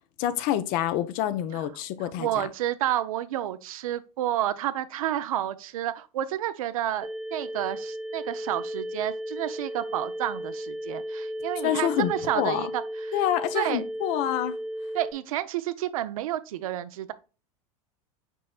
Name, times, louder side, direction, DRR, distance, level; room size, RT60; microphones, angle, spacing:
voice 1, 0.2-2.5 11.6-12.7 13.1-14.5, left 12 dB, 55° left, 0.6 m, -27 dB
voice 2, 2.0-13.2 13.5-13.8 14.9-17.1, right 12 dB, 75° right, 0.5 m, -30 dB
sound 1, 7.0-15.1, equal, 5° right, 0.3 m, -35 dB
5.4 x 4.2 x 2.3 m
hypercardioid pair, 100°, 18 cm